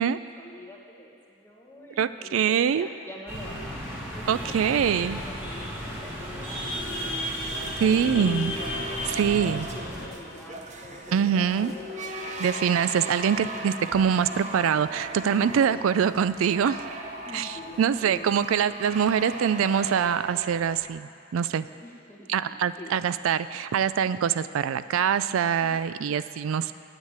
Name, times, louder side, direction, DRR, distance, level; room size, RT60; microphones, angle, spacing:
voice 1, 0.0-7.2 7.8-12.1 15.7-16.2 17.3-18.3 21.8-23.0 25.6-25.8, left 1 dB, 10° left, -3 dB, 1.4 m, -46 dB
voice 2, 2.0-2.9 4.3-5.2 7.8-8.5 9.1-9.7 11.1-11.7 12.4-16.8 17.3-17.5 17.8-21.7 22.3-26.7, right 7 dB, 85° right, 14 dB, 0.3 m, -24 dB
sound 1, 3.3-10.1, equal, 10° right, 2.4 m, -33 dB
sound 2, 5.2-12.5, equal, 50° left, 1.1 m, -49 dB
sound 3, 7.5-20.9, right 1 dB, 35° right, 0.8 m, -38 dB
9.5 x 8.2 x 8.7 m, 2.4 s
head